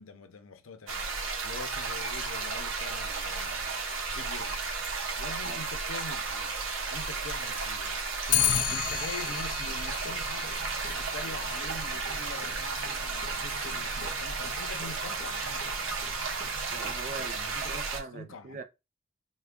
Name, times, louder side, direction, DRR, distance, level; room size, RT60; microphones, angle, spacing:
voice 1, 0.0-3.8 4.1-4.7 5.2-6.6 6.9-8.0 8.7-10.6 10.9-16.0 17.5-17.8 18.1-18.6, left 3 dB, 85° left, 0.6 m, -44 dB
sound 1, 0.9-18.0, right 4 dB, 80° right, 0.8 m, -33 dB
Clock, 8.3-17.7, left 11 dB, 40° left, 0.3 m, -35 dB
voice 2, 16.7-18.6, right 4 dB, 40° right, 0.4 m, -42 dB
3.4 x 2.2 x 3.5 m
head